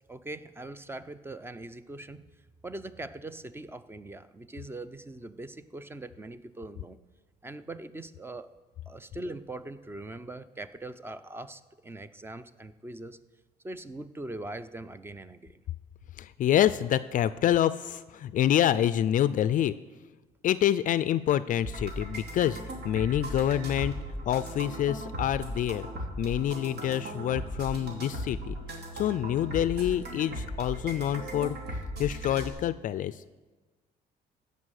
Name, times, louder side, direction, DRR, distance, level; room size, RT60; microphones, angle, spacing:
voice 1, 0.1-2.2 2.6-7.0 7.4-8.5 8.9-13.2 13.6-15.6, right 2 dB, 15° right, 13 dB, 0.5 m, -41 dB
voice 2, 16.2-19.7 20.4-22.6 22.8-23.9 24.3-25.9 26.2-28.5 29.0-31.5 32.0-33.1, left 11 dB, 50° left, 15 dB, 0.4 m, -27 dB
sound 1, 21.6-32.5, equal, 80° right, 2.9 m, -37 dB
16.0 x 5.4 x 6.5 m, 1.2 s
cardioid pair, 110°, 17 cm